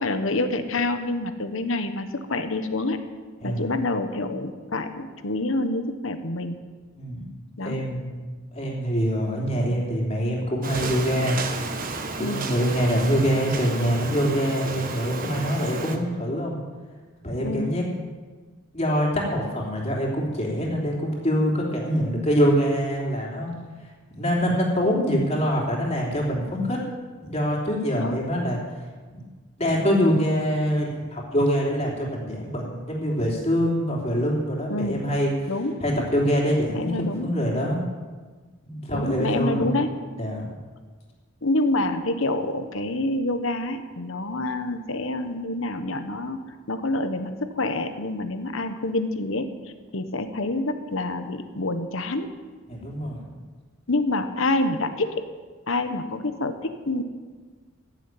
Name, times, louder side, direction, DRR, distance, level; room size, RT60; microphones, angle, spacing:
voice 1, 0.0-3.0 3.4-6.6 7.6-7.8 12.2-12.4 17.4-17.7 27.9-28.2 34.7-35.0 35.5-35.8 36.7-37.3 38.9-39.9 41.4-46.4 46.7-49.5 49.9-52.3 53.9-55.2 55.7-57.0, left 2 dB, 70° left, 8 dB, 1.2 m, -27 dB
voice 2, 6.9-7.3 7.6-8.1 8.5-11.4 12.2-16.6 17.2-17.8 18.7-23.5 24.1-26.8 27.2-28.6 29.1-29.2 29.6-35.5 35.8-37.8 38.6-39.6 40.2-40.4 52.7-53.2, equal, 30° left, -2 dB, 3.3 m, -24 dB
sound 1, 10.6-16.0, right 3 dB, 40° right, 1.3 m, -32 dB
15.5 x 7.3 x 9.1 m, 1.4 s
head